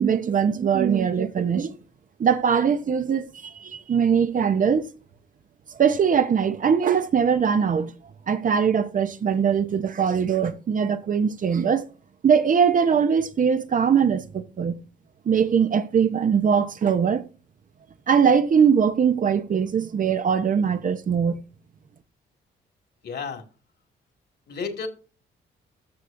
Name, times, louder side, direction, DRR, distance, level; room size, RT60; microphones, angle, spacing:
voice 1, 0.0-1.8 2.2-4.9 5.7-7.9 8.3-11.8 12.2-14.8 15.3-17.2 18.1-21.4, right 7 dB, 45° right, 0.8 m, -21 dB
voice 2, 23.0-23.4 24.5-24.9, left 5 dB, 60° left, 2.2 m, -32 dB
13.0 x 6.2 x 2.6 m
cardioid pair, 75°, 19 cm